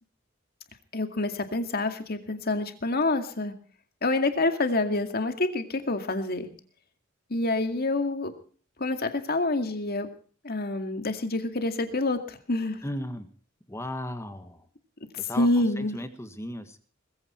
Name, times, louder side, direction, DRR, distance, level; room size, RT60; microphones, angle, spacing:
voice 1, 0.9-3.5 4.0-6.5 7.3-8.3 8.8-10.1 10.4-12.8 15.4-16.0, left 2 dB, 50° left, 7 dB, 2.2 m, -27 dB
voice 2, 12.8-13.3 13.7-14.7 15.2-16.8, left 1 dB, 15° left, 9 dB, 1.5 m, -36 dB
20.0 x 15.0 x 4.4 m, 0.42 s
head